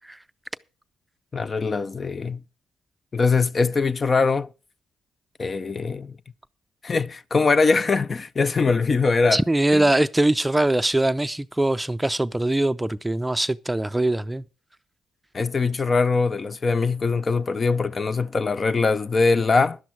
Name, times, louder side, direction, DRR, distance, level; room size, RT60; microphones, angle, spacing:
voice 1, 1.3-2.4 3.1-4.5 5.4-6.2 6.8-9.4 9.7-9.9 15.3-19.8, left 4 dB, 40° left, 0.6 m, -22 dB
voice 2, 9.3-14.4, right 1 dB, 10° right, 0.5 m, -22 dB
11.5 x 10.5 x 4.6 m
supercardioid pair, 65°, 0 cm